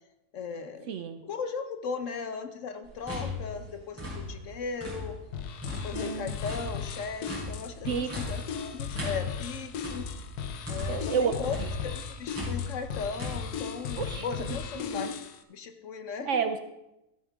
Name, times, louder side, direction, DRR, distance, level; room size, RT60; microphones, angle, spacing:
voice 1, 0.3-0.9 1.2-5.2 5.7-10.1 10.7-15.1 15.5-16.5, left 5 dB, 60° left, 8 dB, 1.0 m, -37 dB
voice 2, 0.9-1.2 5.9-6.4 7.8-8.2 10.9-11.7 14.0-14.3 14.9-15.2 16.2-16.6, right 7 dB, 65° right, 9 dB, 0.8 m, -31 dB
sound 1, 2.8-5.3 5.6-11.2 11.5-13.4, left 2 dB, 10° right, 4.8 m, -37 dB
sound 2, 5.3-15.4, left 7 dB, 90° left, 1.3 m, -37 dB
13.0 x 9.4 x 3.5 m, 0.92 s
omnidirectional pair, 1.6 m